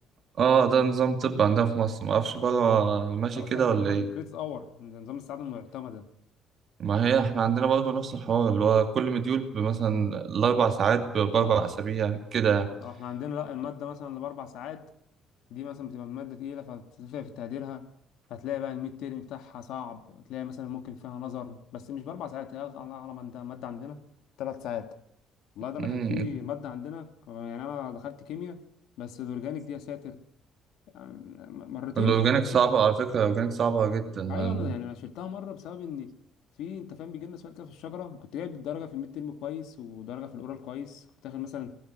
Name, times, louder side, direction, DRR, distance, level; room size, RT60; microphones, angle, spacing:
voice 1, 0.4-4.1 6.8-12.7 25.8-26.3 32.0-34.7, right 7 dB, 40° right, 2.4 m, -24 dB
voice 2, 3.3-6.1 11.4-11.8 12.6-14.9 15.5-17.9 18.3-24.0 24.4-25.0 25.6-28.6 29.0-30.2 30.9-32.2 32.5-32.6 34.3-36.2 36.6-41.8, left 9 dB, 70° left, 2.0 m, -37 dB
27.5 x 19.5 x 6.3 m
cardioid pair, 170°, 0 cm